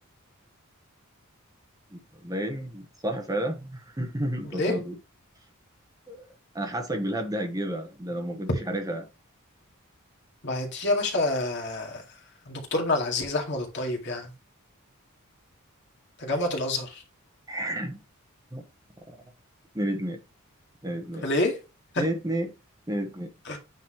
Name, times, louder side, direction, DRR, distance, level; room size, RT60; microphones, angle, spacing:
voice 1, 1.9-5.0 6.1-6.3 6.5-9.1 17.5-18.0 18.5-18.6 19.7-20.2 20.8-21.3 22.0-22.5 22.9-23.3, right 1 dB, 15° right, 1.1 m, -31 dB
voice 2, 10.4-12.0 12.5-14.3 16.2-17.0 21.2-21.5 23.5-23.6, left 2 dB, 55° left, 2.1 m, -27 dB
8.9 x 4.1 x 3.1 m
head